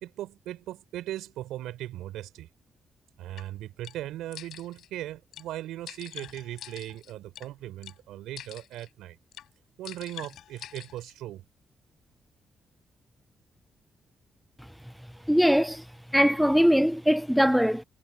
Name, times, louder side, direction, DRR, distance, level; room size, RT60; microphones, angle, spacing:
voice 1, 0.0-2.5 3.2-9.2 9.8-11.5, right 14 dB, 85° right, 3.7 m, -38 dB
sound 1, 3.4-3.5 3.8-4.0 4.3-4.9 5.3-5.5 5.9-7.5 7.8-8.0 8.4-8.9 9.3-9.5 9.9-11.1, left 11 dB, 75° left, 4.6 m, -45 dB
voice 2, 15.3-15.8 16.1-17.8, equal, ahead, 0.4 m, -21 dB
supercardioid pair, 45°, 0 cm